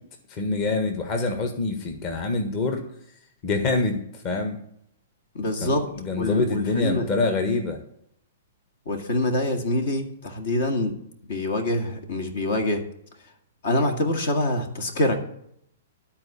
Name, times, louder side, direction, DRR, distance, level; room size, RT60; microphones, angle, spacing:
voice 1, 0.3-2.8 3.4-4.6 5.6-7.8, left 3 dB, 35° left, 5 dB, 1.5 m, -26 dB
voice 2, 5.3-7.1 8.9-11.0 11.3-12.9 13.6-15.2, left 1 dB, 65° left, 5 dB, 1.9 m, -25 dB
13.0 x 4.4 x 8.4 m, 0.71 s
hypercardioid pair, 135°, 0 cm